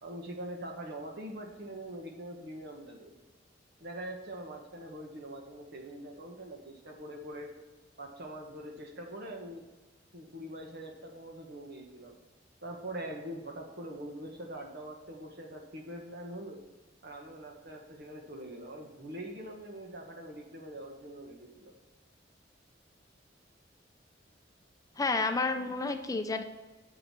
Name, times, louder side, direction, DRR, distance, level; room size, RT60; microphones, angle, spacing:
voice 1, 0.0-3.2 3.8-7.5 8.0-9.7 10.1-12.1 12.6-16.6 17.0-21.7, right 1 dB, 60° right, 2 dB, 1.6 m, -43 dB
voice 2, 25.0-26.4, left 3 dB, 20° left, 6 dB, 0.5 m, -30 dB
7.8 x 6.3 x 6.1 m, 1.2 s
head